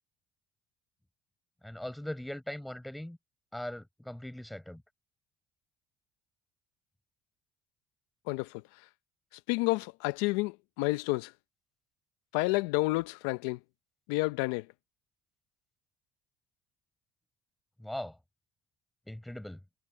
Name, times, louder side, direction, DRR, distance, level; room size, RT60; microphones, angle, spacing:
voice 1, 1.6-3.2 3.5-4.8 17.8-18.2 19.1-19.6, left 1 dB, 5° left, 5.4 m, -40 dB
voice 2, 8.3-8.9 9.3-11.3 12.3-13.6 14.1-14.7, left 23 dB, 85° left, 0.6 m, -30 dB
supercardioid pair, 70°, 0 cm